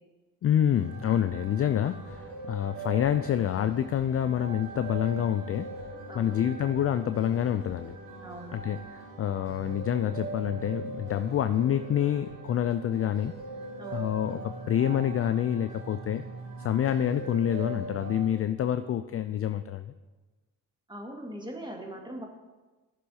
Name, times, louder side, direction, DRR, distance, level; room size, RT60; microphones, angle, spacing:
voice 1, 0.4-5.7 6.1-8.0 8.5-13.4 13.9-16.2 16.6-19.9, left 10 dB, 35° left, 11 dB, 0.4 m, -27 dB
sound 1, 0.7-18.3, right 2 dB, 75° right, 3.0 m, -41 dB
voice 2, 6.1-6.4 8.2-8.6 13.8-14.1 20.9-22.3, right 1 dB, 10° right, 1 dB, 1.9 m, -41 dB
13.0 x 6.8 x 2.8 m, 1.2 s
supercardioid pair, 55°, 43 cm